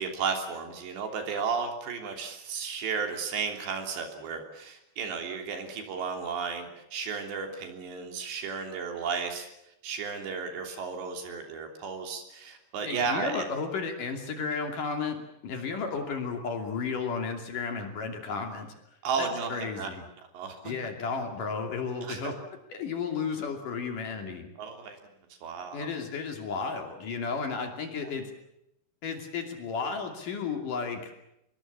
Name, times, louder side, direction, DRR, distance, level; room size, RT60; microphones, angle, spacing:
voice 1, 0.0-9.5 9.8-13.5 19.0-19.9 20.3-20.7 22.0-22.3 24.6-25.0 25.4-25.9, right 5 dB, 70° right, 4 dB, 5.3 m, -33 dB
voice 2, 12.8-18.7 19.2-20.0 20.6-22.3 22.7-24.5 25.7-28.3 29.0-31.1, left 5 dB, 50° left, 4 dB, 4.0 m, -33 dB
25.5 x 22.5 x 7.4 m, 0.81 s
omnidirectional pair, 5.2 m